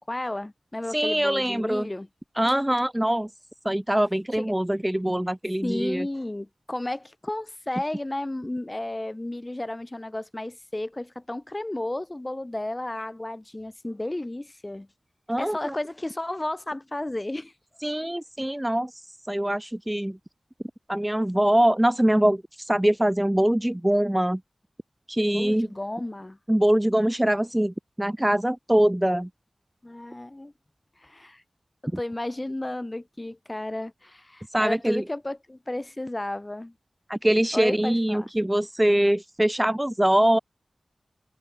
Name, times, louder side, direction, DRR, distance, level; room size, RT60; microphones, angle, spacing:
voice 1, 0.0-2.1 4.3-4.5 5.6-14.9 15.4-17.5 25.3-26.4 29.8-30.5 31.0-31.4 31.8-36.7 37.5-38.3, left 1 dB, 25° left, 2.7 m, -33 dB
voice 2, 0.9-1.9 2.4-3.3 3.6-6.1 15.3-15.7 17.8-19.0 19.3-20.2 20.9-24.4 25.1-25.7 26.5-29.3 34.5-35.0 37.1-40.4, right 1 dB, 10° right, 0.4 m, -23 dB
wide cardioid pair, 70°, 0 cm